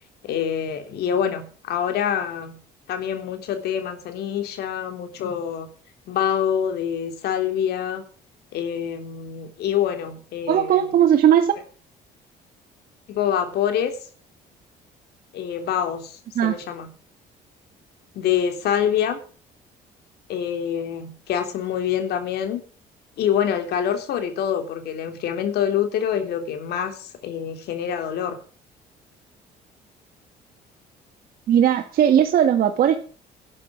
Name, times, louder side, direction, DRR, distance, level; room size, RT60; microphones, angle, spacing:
voice 1, 0.2-2.6 2.9-5.7 6.1-8.0 8.5-10.8 13.1-14.0 15.3-16.9 18.1-19.2 20.3-22.6 23.2-28.4, left 9 dB, 75° left, 7 dB, 3.5 m, -26 dB
voice 2, 10.5-11.5 16.4-16.6 31.5-33.0, right 9 dB, 60° right, 4 dB, 1.9 m, -18 dB
12.0 x 9.4 x 7.6 m, 0.40 s
cardioid pair, 110°, 17 cm